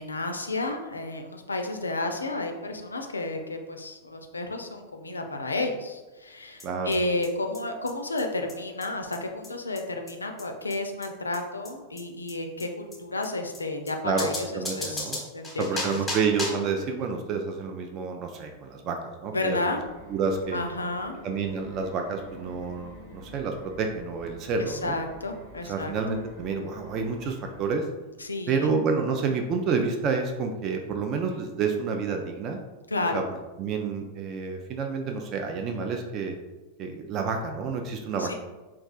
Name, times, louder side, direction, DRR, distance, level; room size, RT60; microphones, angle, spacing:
voice 1, 0.0-16.0 19.3-19.8 20.5-21.2 24.6-25.9 28.2-28.7 32.9-33.2 38.2-38.3, left 2 dB, 80° left, 5 dB, 0.3 m, -32 dB
sound 1, 6.6-6.7 6.9-7.0 7.2-7.3 7.5-7.6 7.9-8.0 8.2-8.3 8.5-8.6 8.8-8.9 9.1-9.2 9.4-9.5 9.8-9.9 10.1-10.2 10.4-10.5 10.7-10.8 11.0-11.1 11.3-11.4 11.6-11.7 12.0-12.1 12.3-12.4 12.6-12.7 12.9-13.0 13.2-13.3 13.5-13.6 13.9-14.0 14.2-16.7, left 2 dB, 5° left, 0.9 m, -35 dB
voice 2, 6.6-7.0 14.0-14.3 14.5-15.2 15.6-19.8 20.1-20.6 21.2-25.0 25.7-27.8 28.5-32.6 33.1-33.2 33.6-36.4 36.8-38.3, right 5 dB, 35° right, 4 dB, 0.3 m, -29 dB
sound 2, 19.7-27.7, equal, 50° right, 1.0 m, -49 dB
4.2 x 2.3 x 2.3 m, 1.2 s
figure-of-eight pair, 90°, 0 cm